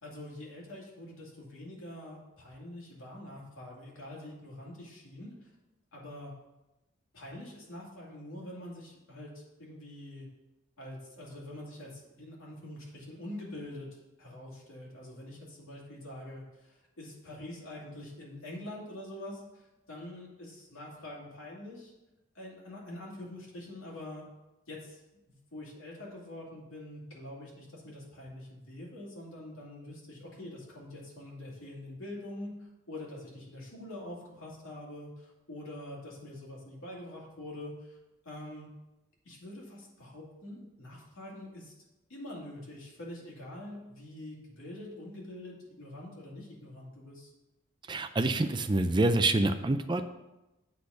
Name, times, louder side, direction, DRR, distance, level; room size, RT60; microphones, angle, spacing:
voice 1, 0.0-5.5 5.9-6.3 7.1-10.3 10.8-13.9 14.2-21.9 22.3-24.2 24.7-25.0 25.5-38.0 38.2-38.7 39.2-41.7 42.1-47.3, left 1 dB, 80° left, -4 dB, 2.6 m, -45 dB
voice 2, 47.9-50.1, right 2 dB, 20° right, 9 dB, 0.4 m, -27 dB
8.3 x 4.1 x 6.4 m, 0.99 s
head